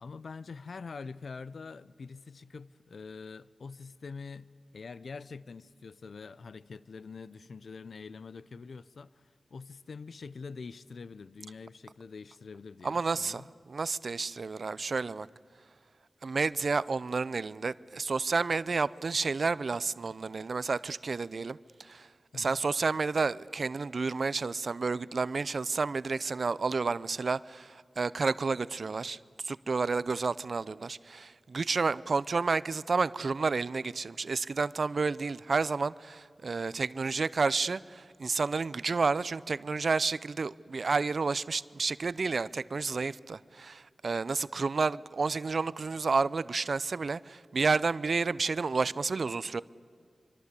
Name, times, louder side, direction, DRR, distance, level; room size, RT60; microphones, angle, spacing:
voice 1, 0.0-4.5 4.7-13.5 22.3-22.6, left 4 dB, 80° left, 0.6 m, -45 dB
voice 2, 12.8-13.4 13.7-15.3 16.2-22.1 22.3-29.2 29.4-49.6, right 4 dB, 60° right, 0.6 m, -30 dB
25.0 x 24.5 x 8.3 m
wide cardioid pair, 95°, 0 cm